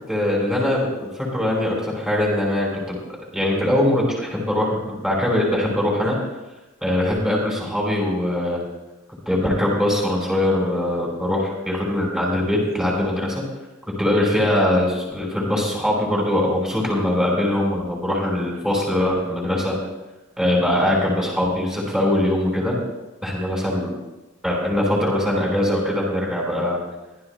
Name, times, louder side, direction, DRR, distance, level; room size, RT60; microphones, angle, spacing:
voice 1, 0.1-3.0 3.3-6.2 6.8-8.6 9.2-13.4 14.0-19.8 20.4-22.8 23.2-23.9 24.4-26.8, left 1 dB, 5° right, -3 dB, 5.0 m, -22 dB
24.0 x 15.0 x 2.3 m, 1.0 s
head